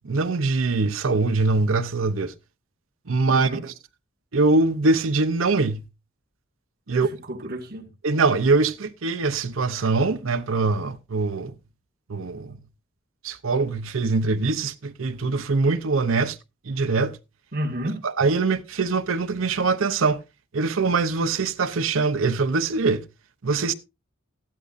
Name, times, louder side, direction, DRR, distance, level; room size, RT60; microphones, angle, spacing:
voice 1, 0.0-2.3 3.1-3.7 4.3-5.9 6.9-7.1 7.4-7.5 8.0-11.5 12.1-12.6 13.2-16.4 16.7-17.2 18.0-20.2 20.5-23.0 23.4-23.7, right 3 dB, 90° right, 0.8 m, -23 dB
voice 2, 3.3-3.6 6.9-7.9 17.5-18.0, right 1 dB, 50° right, 2.0 m, -31 dB
14.5 x 12.0 x 2.6 m
head